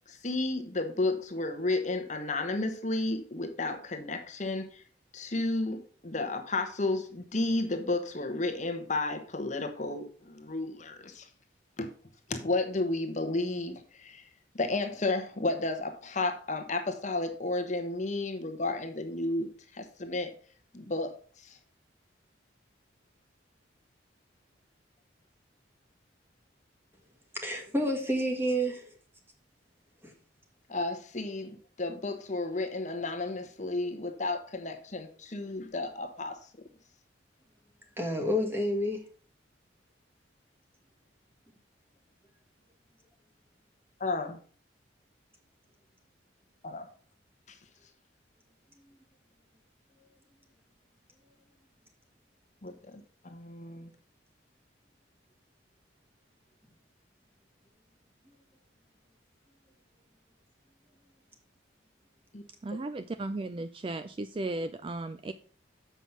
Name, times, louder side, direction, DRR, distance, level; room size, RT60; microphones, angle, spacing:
voice 1, 0.1-4.8 5.1-11.3 11.8-11.9 12.3-14.2 14.5-20.3 20.7-21.1 21.4-21.6 30.7-36.4 44.0-44.4 46.6-46.9 52.6-53.9 62.3-62.4, left 2 dB, 40° left, 1.1 m, -32 dB
voice 2, 27.3-28.9 30.0-30.1 38.0-39.0, equal, 10° right, 1.6 m, -29 dB
voice 3, 62.6-65.3, right 2 dB, 25° right, 0.3 m, -35 dB
7.2 x 5.6 x 5.9 m
head